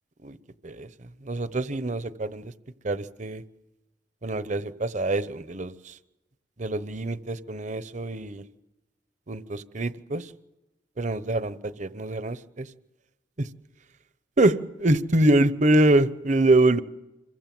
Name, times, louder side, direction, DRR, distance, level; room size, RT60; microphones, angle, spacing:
voice 1, 0.6-2.5 2.8-3.4 4.2-6.0 6.6-8.4 9.3-10.3 11.0-12.7 13.4-13.5 14.4-16.8, right 2 dB, 40° right, 14 dB, 1.0 m, -25 dB
27.0 x 22.5 x 7.7 m, 0.99 s
head